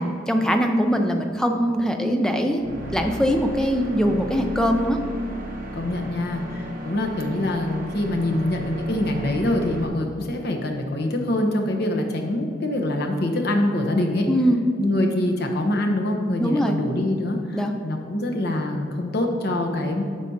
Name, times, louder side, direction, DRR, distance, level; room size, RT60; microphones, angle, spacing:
voice 1, 0.0-5.0 14.3-14.6 16.4-16.8 17.5-17.8, equal, 5° left, 4 dB, 0.4 m, -22 dB
sound 1, 2.6-9.9, equal, 45° right, 0.8 m, -35 dB
voice 2, 5.7-14.3 14.8-20.0, left 1 dB, 55° left, 2 dB, 0.8 m, -24 dB
10.0 x 6.1 x 2.8 m, 2.4 s
head